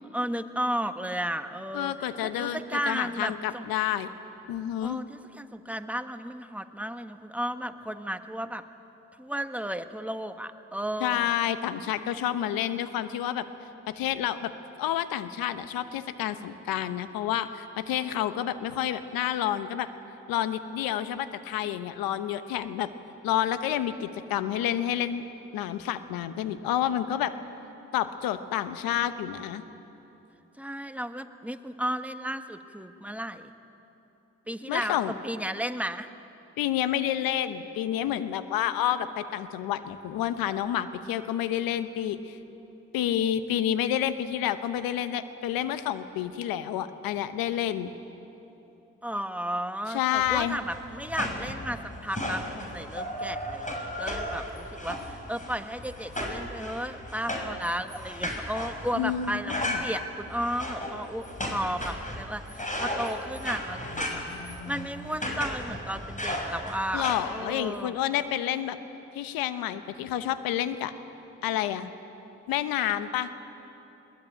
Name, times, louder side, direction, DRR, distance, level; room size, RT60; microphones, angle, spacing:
voice 1, 0.1-3.7 4.8-8.6 9.2-11.3 30.6-33.5 34.5-36.1 49.0-68.0, equal, 5° right, 8 dB, 1.5 m, -34 dB
voice 2, 1.7-4.1 4.5-5.0 11.0-13.5 13.9-14.5 14.8-19.9 20.3-22.9 23.2-25.2 25.5-27.3 27.9-29.6 34.7-35.1 36.6-42.4 42.9-47.9 49.9-50.6 58.9-59.8 66.9-68.8 69.1-70.9 71.4-71.9 72.5-73.3, left 11 dB, 80° left, 12 dB, 1.0 m, -29 dB
sound 1, 50.2-67.2, left 1 dB, 20° left, 6.4 m, -35 dB
21.0 x 19.0 x 9.0 m, 3.0 s
hypercardioid pair, 40°, 35 cm